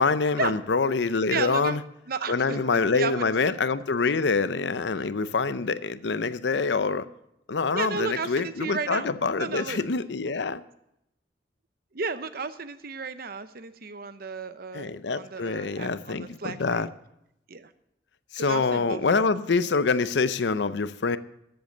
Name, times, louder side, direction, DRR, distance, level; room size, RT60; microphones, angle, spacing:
voice 1, 0.0-1.8 2.3-7.1 7.5-10.6 14.7-16.9 18.3-21.2, left 4 dB, 70° left, 14 dB, 0.6 m, -25 dB
voice 2, 1.3-1.8 2.1-3.5 7.7-9.1 9.4-9.8 11.9-16.9 17.5-17.7 18.4-19.2, right 4 dB, 55° right, 11 dB, 0.8 m, -33 dB
14.0 x 7.9 x 6.5 m, 0.81 s
head